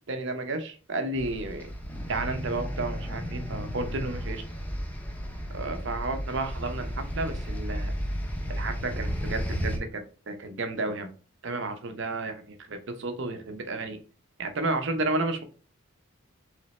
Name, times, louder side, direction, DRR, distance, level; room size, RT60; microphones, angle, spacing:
voice 1, 0.1-1.7 2.1-4.4 5.5-7.9 8.5-11.1 11.4-14.0 14.4-15.4, right 2 dB, 55° right, 6 dB, 0.7 m, -32 dB
sound 1, 1.1-9.8, equal, 5° left, 0.5 m, -33 dB
3.2 x 3.1 x 4.1 m, 0.37 s
head